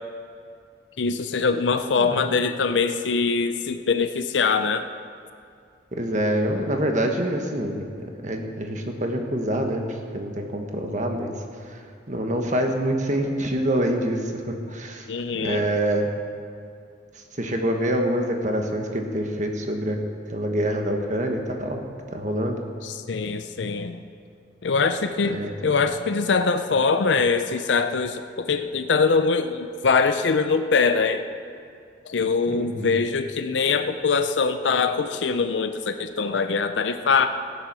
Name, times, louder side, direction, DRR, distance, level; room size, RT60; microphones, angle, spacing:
voice 1, 1.0-4.8 15.1-15.6 22.8-24.0 24.6-31.2 32.1-37.3, left 4 dB, 90° left, 8 dB, 0.6 m, -23 dB
voice 2, 2.0-2.3 5.9-11.3 11.6-15.1 15.3-16.1 17.4-20.0 20.3-21.8 22.1-22.6 25.2-25.5 32.5-32.9, right 1 dB, 45° right, 3 dB, 1.4 m, -26 dB
14.5 x 10.5 x 6.2 m, 2.4 s
head